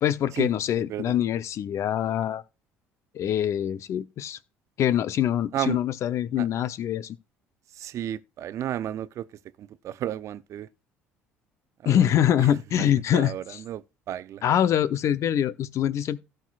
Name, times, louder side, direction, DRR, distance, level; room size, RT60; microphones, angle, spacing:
voice 1, 0.0-2.4 3.1-4.4 4.8-7.2 11.8-13.3 14.4-16.2, left 10 dB, 55° left, 0.7 m, -24 dB
voice 2, 0.8-1.1 5.5-5.8 6.4-6.5 7.7-9.3 9.6-10.7 11.8-12.1 12.8-14.4, right 11 dB, 55° right, 0.6 m, -33 dB
16.5 x 6.5 x 2.5 m
hypercardioid pair, 60°, 6 cm